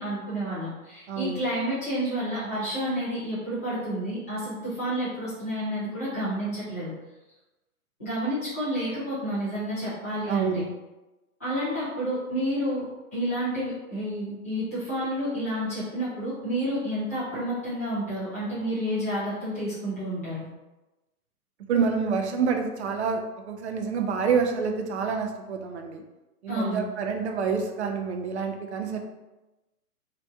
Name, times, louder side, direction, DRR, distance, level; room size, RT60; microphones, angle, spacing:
voice 1, 0.0-6.9 8.0-10.6 11.4-12.9 13.1-20.5 26.5-26.8, equal, 10° left, -14 dB, 0.4 m, -30 dB
voice 2, 1.1-1.4 10.2-10.7 21.7-23.2 23.5-26.0 26.4-29.0, right 5 dB, 50° right, 4 dB, 0.5 m, -27 dB
2.8 x 2.5 x 3.4 m, 1.1 s
hypercardioid pair, 145°, 46 cm